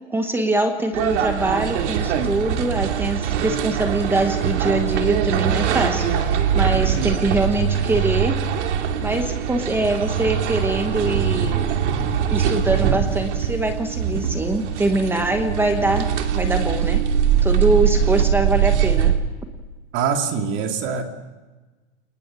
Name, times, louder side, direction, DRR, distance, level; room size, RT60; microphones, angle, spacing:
voice 1, 0.1-8.4 9.0-11.7 12.3-17.0 17.4-19.1, right 2 dB, 5° right, 6 dB, 1.0 m, -23 dB
sound 1, 0.9-19.2, right 8 dB, 85° right, 2.7 m, -22 dB
voice 2, 19.9-21.0, right 6 dB, 35° right, 4 dB, 2.5 m, -24 dB
29.5 x 20.0 x 6.2 m, 1.3 s
supercardioid pair, 170°, 34 cm